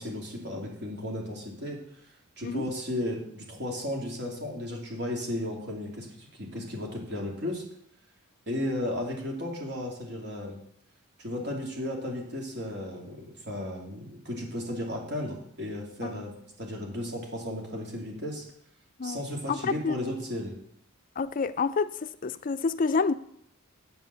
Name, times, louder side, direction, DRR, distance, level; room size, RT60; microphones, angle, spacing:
voice 1, 0.0-1.8 2.4-7.6 8.5-10.6 11.2-16.3 16.6-18.4 19.0-20.5, left 1 dB, 50° right, 2.8 m, -34 dB
voice 2, 19.5-19.9 21.2-21.9 22.2-23.1, left 4 dB, 40° left, 0.4 m, -28 dB
8.4 x 7.3 x 6.9 m
head